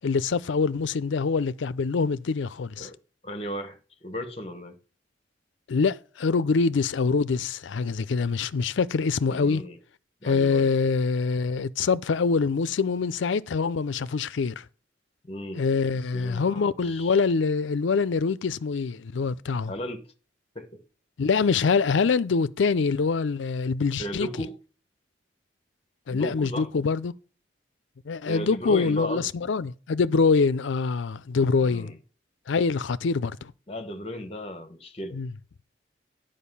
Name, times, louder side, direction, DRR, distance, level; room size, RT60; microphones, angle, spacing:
voice 1, 0.0-2.9 5.7-9.6 10.2-14.6 15.5-19.7 21.2-24.3 26.1-27.1 28.1-31.9 32.5-33.5 35.1-35.3, left 4 dB, 75° left, 0.5 m, -25 dB
voice 2, 3.2-4.8 9.3-9.8 10.2-10.7 15.3-15.7 16.1-17.2 19.7-20.1 20.5-20.8 24.0-24.6 26.1-26.7 28.3-29.3 31.6-32.0 33.7-35.2, equal, 30° left, 1.0 m, -35 dB
10.5 x 5.2 x 5.4 m
head